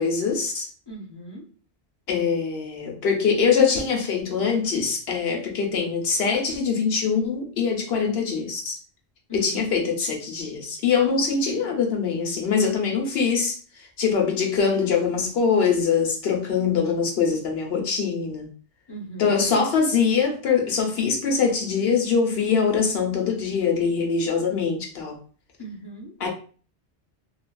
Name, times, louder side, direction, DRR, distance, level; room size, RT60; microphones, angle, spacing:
voice 1, 0.0-0.7 2.1-8.8 9.3-18.5 19.2-25.2 26.2-26.3, left 5 dB, 70° left, 2 dB, 0.9 m, -23 dB
voice 2, 0.9-1.4 9.3-9.6 18.9-19.5 25.6-26.1, right 2 dB, 25° left, -2 dB, 0.7 m, -38 dB
3.0 x 2.4 x 2.2 m, 0.40 s
omnidirectional pair, 1.1 m